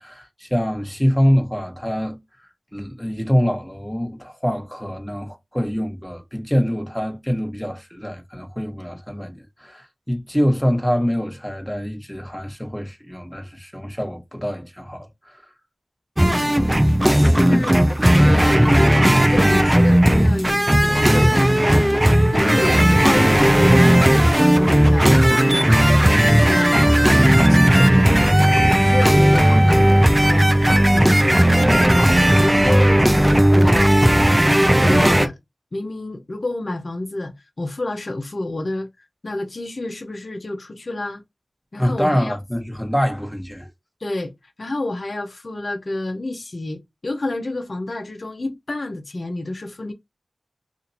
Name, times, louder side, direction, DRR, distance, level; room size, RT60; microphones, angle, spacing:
voice 1, 0.0-2.2 2.7-15.4 16.6-16.8 17.1-17.7 32.0-32.2 41.8-43.7, equal, 5° left, 1.3 m, -25 dB
voice 2, 16.2-16.5 17.0-17.9 18.2-22.0 22.3-25.1 25.5-26.1 26.3-28.5 28.8-30.5 30.9-32.0 32.3-32.9 33.5-33.9 34.8-35.4 35.7-38.9 39.2-41.2 41.7-42.4 44.0-44.3 44.6-49.9, left 2 dB, 55° left, 0.7 m, -28 dB
sound 1, 16.2-35.3, right 1 dB, 15° right, 0.6 m, -15 dB
2.6 x 2.6 x 4.1 m
cardioid pair, 45°, 0 cm